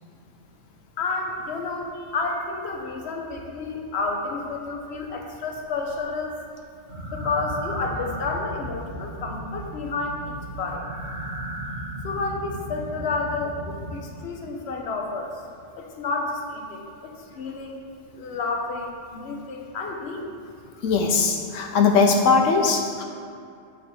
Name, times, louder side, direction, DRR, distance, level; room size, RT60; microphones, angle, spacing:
voice 1, 1.0-6.4 7.1-10.8 12.0-15.4 15.8-17.9 18.1-20.4, left 3 dB, 60° left, 1 dB, 1.2 m, -30 dB
sound 1, 6.9-14.0, right 1 dB, 70° right, 2.6 m, -35 dB
voice 2, 20.8-23.0, left 4 dB, 85° left, 2 dB, 1.1 m, -20 dB
8.8 x 4.0 x 6.8 m, 2.4 s
omnidirectional pair, 1.3 m